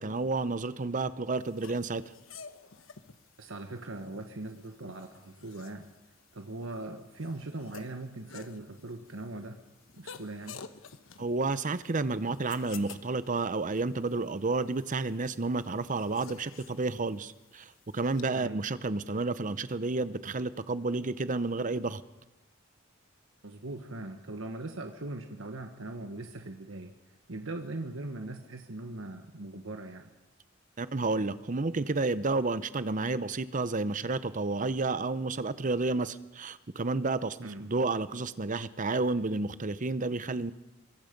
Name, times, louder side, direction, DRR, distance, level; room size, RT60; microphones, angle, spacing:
voice 1, 0.0-2.0 11.2-22.0 30.8-40.5, right 3 dB, 40° right, 15 dB, 0.8 m, -31 dB
sound 1, 1.4-18.2, left 6 dB, 85° left, 1.1 m, -52 dB
voice 2, 3.4-5.9 6.3-9.6 10.0-10.6 18.3-18.6 23.4-26.9 27.3-30.1 37.4-37.6, right 2 dB, 75° right, 5 dB, 1.4 m, -40 dB
24.0 x 23.0 x 5.3 m, 1.1 s
head